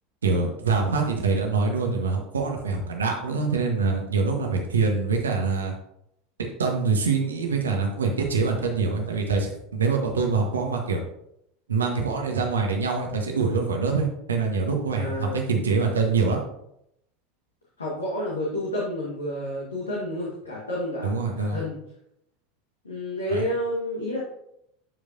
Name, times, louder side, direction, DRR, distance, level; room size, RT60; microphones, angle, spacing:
voice 1, 0.2-5.7 6.6-11.0 11.7-16.4 21.0-21.6 23.3-23.4, right 4 dB, 80° right, 2 dB, 1.4 m, -25 dB
voice 2, 15.0-15.5 17.8-21.8 22.8-24.2, left 1 dB, 85° left, -5 dB, 1.7 m, -30 dB
11.0 x 5.0 x 2.8 m, 0.77 s
figure-of-eight pair, 80°, 0 cm